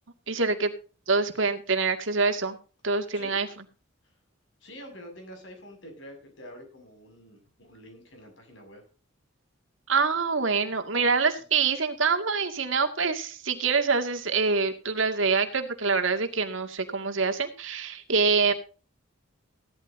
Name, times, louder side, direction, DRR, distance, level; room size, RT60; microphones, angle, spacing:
voice 1, 0.3-0.7 1.1-2.6 2.8-3.5 9.9-18.5, right 4 dB, 70° right, 6 dB, 2.1 m, -25 dB
voice 2, 3.1-3.5 4.6-8.8 11.6-11.7 18.5-18.6, equal, 65° left, 3 dB, 6.4 m, -47 dB
16.5 x 12.5 x 2.7 m, 0.36 s
head